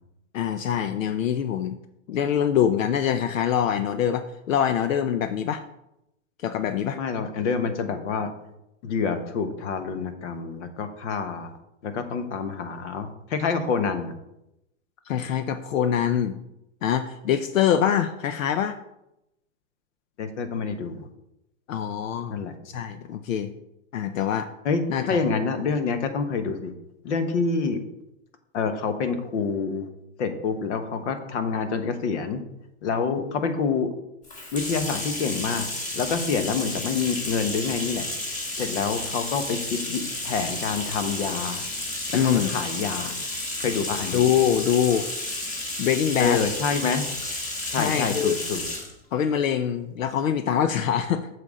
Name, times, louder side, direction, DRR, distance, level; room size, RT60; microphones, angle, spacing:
voice 1, 0.3-1.8 2.1-5.6 6.4-7.0 15.1-16.4 16.8-18.8 21.7-22.4 22.6-23.5 23.9-24.5 24.9-25.2 42.1-42.5 44.1-45.1 45.8-46.4 47.7-48.4 49.1-51.3, left 9 dB, 80° left, 9 dB, 0.7 m, -24 dB
voice 2, 7.0-8.3 8.8-11.5 11.8-14.1 20.2-21.1 22.3-22.5 24.6-24.8 25.1-26.7 27.0-27.8 28.5-29.9 30.2-32.4 32.8-33.9 34.5-35.7 35.9-38.0 38.6-41.6 42.2-43.1 43.6-44.2 46.2-47.0 47.7-48.6, left 5 dB, 60° left, 9 dB, 1.3 m, -27 dB
Bathtub (filling or washing), 34.2-48.9, left 2 dB, 20° left, 1.6 m, -32 dB
8.1 x 6.8 x 3.7 m, 0.86 s
hypercardioid pair, 140°, 39 cm